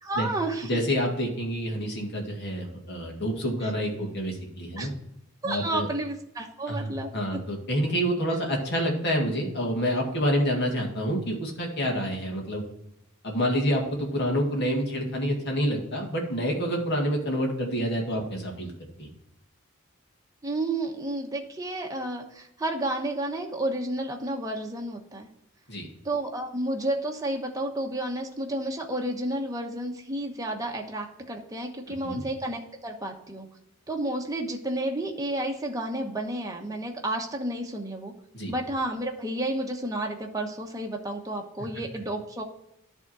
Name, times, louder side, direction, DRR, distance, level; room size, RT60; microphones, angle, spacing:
voice 1, 0.0-0.8 4.8-4.9 5.4-7.4 20.4-25.3 26.0-33.5 33.9-38.1 38.5-42.4, right 1 dB, 15° right, 1 dB, 1.0 m, -31 dB
voice 2, 0.7-4.9 5.4-5.9 6.7-12.6 13.2-18.7 19.0-19.1 25.7-25.9 32.0-32.2 38.3-38.5, equal, 50° left, 0 dB, 2.0 m, -28 dB
10.5 x 3.6 x 6.1 m, 0.83 s
head